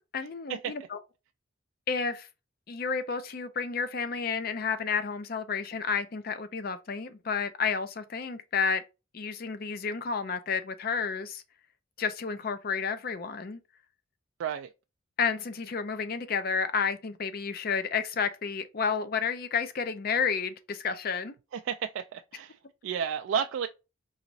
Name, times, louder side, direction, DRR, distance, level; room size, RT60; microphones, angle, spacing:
voice 1, 0.1-1.0 1.9-2.3 2.7-8.8 9.1-11.4 12.0-13.6 15.2-21.3, left 5 dB, 45° left, 0.5 m, -31 dB
voice 2, 21.5-23.7, right 7 dB, 75° right, 0.3 m, -32 dB
4.8 x 3.0 x 2.6 m
head